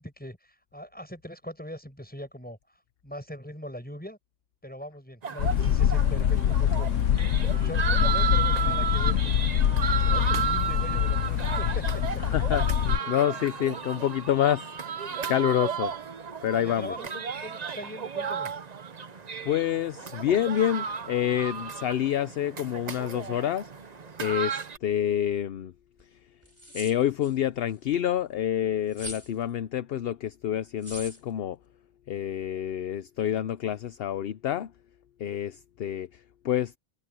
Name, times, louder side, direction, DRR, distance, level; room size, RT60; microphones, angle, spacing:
voice 1, 0.0-2.6 3.0-4.2 4.6-7.1 7.4-9.4 9.9-12.2 16.6-18.5, equal, 5° left, 7.1 m, -41 dB
sound 1, 5.2-24.8, right 7 dB, 40° right, 0.8 m, -33 dB
sound 2, 5.4-13.0, left 10 dB, 85° left, 1.1 m, -24 dB
voice 2, 12.2-12.6 13.1-16.0 16.4-16.9 19.4-23.7 24.2-25.7 26.0-26.2 26.7-31.6 32.1-34.7 35.2-36.8, left 10 dB, 60° left, 0.8 m, -28 dB
sound 3, 26.0-26.1 26.4-27.3 28.9-29.3 30.8-31.2, right 1 dB, 25° right, 6.2 m, -41 dB
omnidirectional pair, 1.3 m